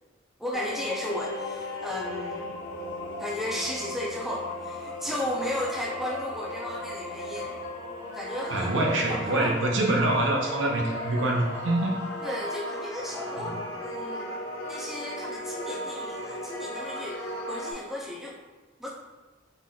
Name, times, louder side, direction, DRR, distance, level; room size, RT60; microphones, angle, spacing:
voice 1, 0.4-2.5 3.2-7.5 8.1-8.8 9.1-9.5 12.2-14.3 14.6-18.4 18.8-18.9, left 1 dB, ahead, -4 dB, 0.5 m, -35 dB
sound 1, 0.5-17.7, left 1 dB, 80° left, 0.7 m, -36 dB
voice 2, 8.5-12.0 13.4-13.6, right 2 dB, 65° right, 0 dB, 0.7 m, -25 dB
4.1 x 2.5 x 3.7 m, 1.3 s
head